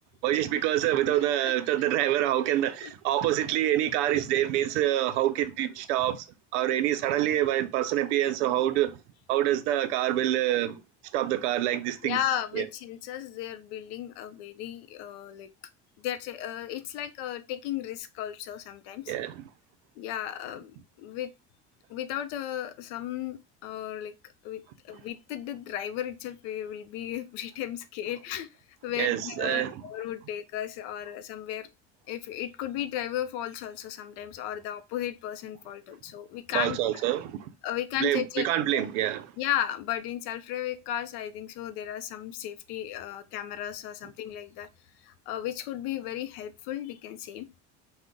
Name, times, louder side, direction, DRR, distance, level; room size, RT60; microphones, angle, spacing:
voice 1, 0.2-6.3 6.5-9.0 9.3-10.8 11.1-12.2 12.5-12.6 19.1-19.4 29.0-29.8 36.5-37.5 38.0-39.3, right 13 dB, 80° right, 0.5 m, -26 dB
voice 2, 12.0-15.5 16.0-19.1 20.0-21.3 21.9-24.1 24.4-28.5 28.8-31.7 32.1-36.8 37.6-38.5 38.7-38.8 39.4-44.7 45.0-47.5, left 11 dB, 75° left, 0.5 m, -35 dB
2.4 x 2.1 x 3.6 m
hypercardioid pair, 70°, 34 cm